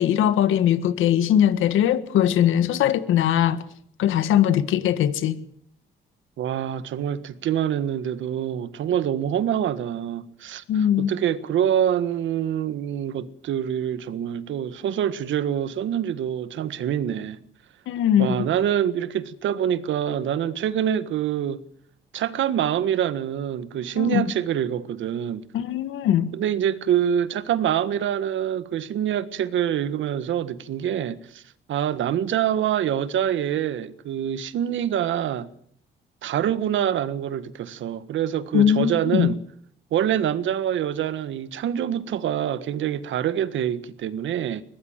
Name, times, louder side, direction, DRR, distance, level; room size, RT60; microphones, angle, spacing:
voice 1, 0.0-3.6 4.0-5.4 10.7-11.1 17.9-18.5 24.0-24.3 25.5-26.3 38.5-39.3, left 10 dB, 85° left, 1.7 m, -20 dB
voice 2, 6.4-17.4 18.2-21.6 22.1-25.4 26.3-31.4 31.7-35.5 36.2-39.4 39.9-44.6, right 10 dB, 75° right, 1.6 m, -25 dB
22.5 x 18.5 x 7.5 m
cardioid pair, 90°, 20 cm